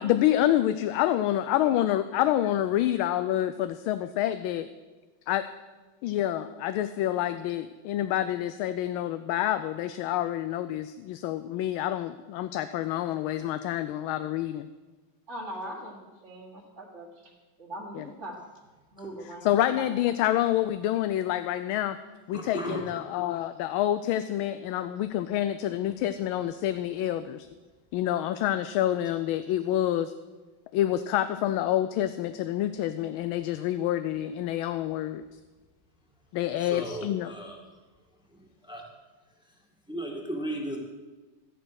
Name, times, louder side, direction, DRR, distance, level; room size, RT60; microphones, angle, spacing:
voice 1, 0.0-4.7 5.3-5.4 6.0-14.7 18.0-18.1 19.4-22.0 22.3-27.5 27.9-30.1 30.7-35.2 36.3-37.3, left 12 dB, 85° left, 11 dB, 1.4 m, -27 dB
voice 2, 15.3-16.0 16.2-17.3 17.6-18.4 18.9-19.8, right 1 dB, 35° right, -4 dB, 1.9 m, -41 dB
voice 3, 22.3-23.0 36.5-37.7 38.3-38.9 39.5-40.8, equal, ahead, 0 dB, 1.8 m, -36 dB
13.5 x 11.0 x 6.4 m, 1.3 s
omnidirectional pair, 2.2 m